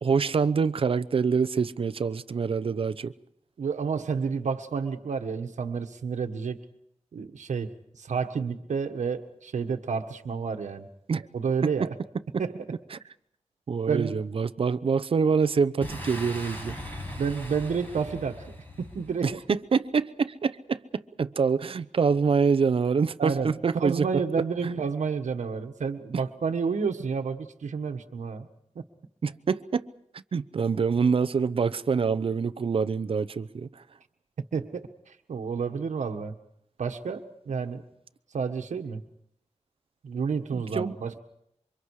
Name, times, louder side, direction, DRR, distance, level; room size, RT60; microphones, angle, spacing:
voice 1, 0.0-3.1 11.1-11.3 11.8-11.9 12.3-12.4 12.9-13.0 13.7-16.8 19.2-24.2 24.6-24.8 29.2-29.9 30.3-33.7 40.5-41.0, right 5 dB, 50° right, 0.8 m, -26 dB
voice 2, 3.6-6.6 7.1-7.7 8.0-10.9 11.3-11.9 12.4-12.5 13.9-14.2 17.2-18.5 18.8-19.4 23.2-28.5 28.7-28.8 34.5-34.9 35.3-36.3 36.8-37.8 38.3-39.0 40.0-41.2, right 5 dB, 85° right, 1.5 m, -30 dB
Boom, 15.8-19.4, equal, 15° left, 6.8 m, -39 dB
28.0 x 25.0 x 4.9 m
wide cardioid pair, 180°, 12 cm